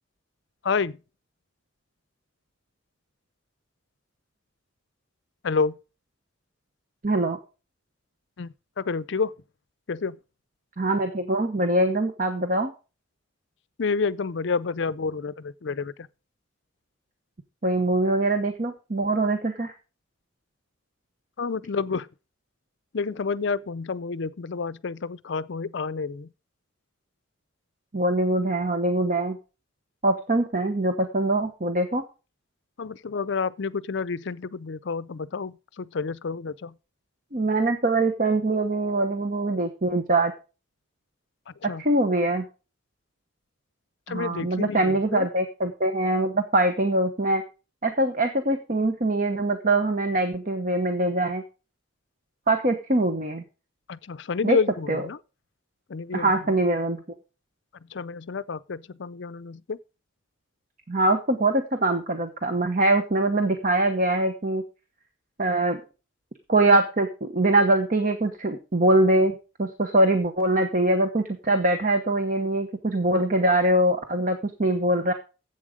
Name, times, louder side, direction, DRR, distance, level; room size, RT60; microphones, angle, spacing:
voice 1, 0.6-1.0 5.4-5.8 8.4-9.3 9.9-10.2 13.8-16.1 21.4-22.1 22.9-26.3 32.8-36.7 41.5-41.8 44.1-45.3 53.9-55.2 55.9-56.3 57.9-59.8, left 4 dB, 55° left, 0.5 m, -29 dB
voice 2, 7.0-7.4 10.8-12.7 17.6-19.7 27.9-29.4 30.0-32.0 37.3-40.3 41.6-42.5 44.1-47.4 47.8-51.4 52.5-53.4 54.4-54.6 54.9-55.0 56.1-57.0 60.9-64.6 65.4-65.8 66.5-75.1, right 2 dB, 40° right, 1.0 m, -23 dB
11.0 x 8.1 x 5.0 m
head